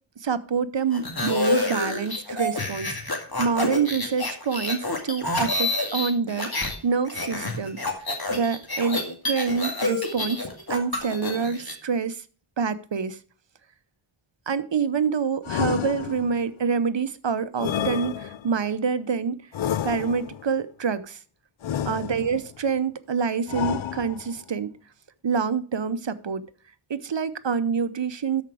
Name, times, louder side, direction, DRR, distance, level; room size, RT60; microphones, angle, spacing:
voice 1, 0.2-7.8 8.3-9.0 9.3-12.2 12.6-13.2 14.5-19.4 19.8-21.2 21.9-24.7 25.2-26.4 26.9-28.4, right 6 dB, 60° right, 14 dB, 0.8 m, -26 dB
sound 1, 0.9-6.8 7.0-11.7, left 2 dB, 45° left, 2.2 m, -28 dB
sound 2, 15.4-16.5 17.6-18.6 19.5-20.5 21.6-22.5 23.5-24.4, left 10 dB, 65° left, 0.5 m, -30 dB
13.0 x 5.1 x 4.8 m, 0.39 s
wide cardioid pair, 50°, 50 cm